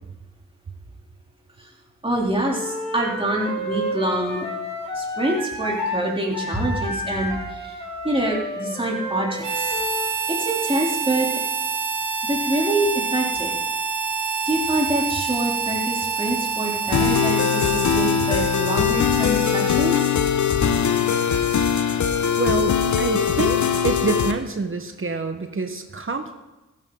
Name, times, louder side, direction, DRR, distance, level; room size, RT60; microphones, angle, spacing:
voice 1, 2.0-4.5 4.9-7.8 8.0-9.8 10.3-11.3 12.3-13.6 14.4-20.0, right 1 dB, 15° right, -2 dB, 3.2 m, -25 dB
Wind instrument woodwind instrument, 2.5-6.0 6.3-10.1, left 1 dB, 20° left, 4.4 m, -31 dB
Harmonica, 9.4-20.5, right 5 dB, 85° right, 0.8 m, -27 dB
sound 1, 16.9-24.3, left 8 dB, 70° left, 0.9 m, -21 dB
voice 2, 22.4-26.3, right 4 dB, 45° right, 7 dB, 1.3 m, -26 dB
14.5 x 9.1 x 3.8 m, 1.1 s
cardioid pair, 50°, 30 cm